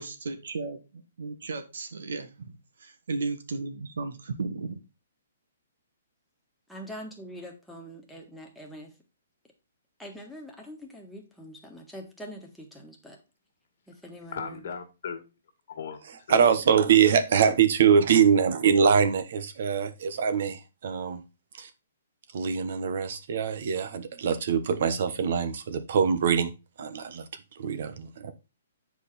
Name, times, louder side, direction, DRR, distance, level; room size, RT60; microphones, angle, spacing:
voice 1, 0.0-4.8, right 3 dB, 75° right, 1.6 m, -35 dB
voice 2, 6.7-8.9 10.0-13.2 13.9-14.6, equal, ahead, 1.6 m, -43 dB
voice 3, 14.3-15.2 15.7-16.0 16.3-16.5, left 6 dB, 60° left, 1.8 m, -36 dB
voice 4, 16.3-21.2 21.6-21.7 22.3-26.5 26.8-27.2 27.6-27.9, right 7 dB, 60° right, 1.2 m, -23 dB
8.2 x 4.9 x 4.2 m
hypercardioid pair, 155°, 0 cm